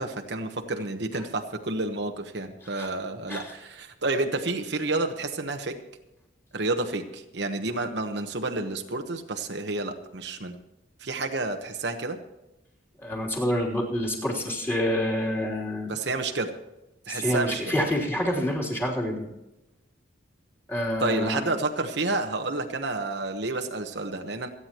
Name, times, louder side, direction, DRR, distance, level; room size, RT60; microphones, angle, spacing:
voice 1, 0.0-5.8 6.5-10.6 11.0-12.2 15.9-16.6 17.1-17.7 21.0-24.5, right 2 dB, 60° right, 5 dB, 1.1 m, -30 dB
voice 2, 13.0-15.9 17.1-19.3 20.7-21.4, equal, 10° left, -2 dB, 3.2 m, -27 dB
27.5 x 9.7 x 3.0 m, 0.95 s
head